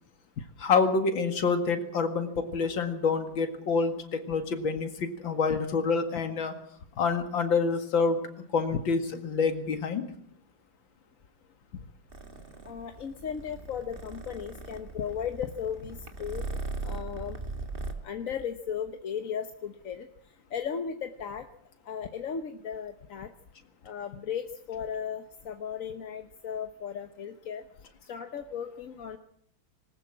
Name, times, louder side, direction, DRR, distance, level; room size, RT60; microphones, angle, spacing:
voice 1, 0.6-6.5 7.0-8.2 8.5-10.1, left 4 dB, 75° left, 7 dB, 2.8 m, -27 dB
Purr, 12.1-17.9, right 3 dB, 30° right, 2.0 m, -39 dB
voice 2, 12.6-16.5 16.8-17.4 18.0-20.1 20.5-21.5 21.8-23.3 23.8-27.7 28.1-29.2, left 7 dB, 50° left, 7 dB, 1.3 m, -36 dB
20.0 x 19.0 x 7.4 m, 0.65 s
omnidirectional pair, 2.1 m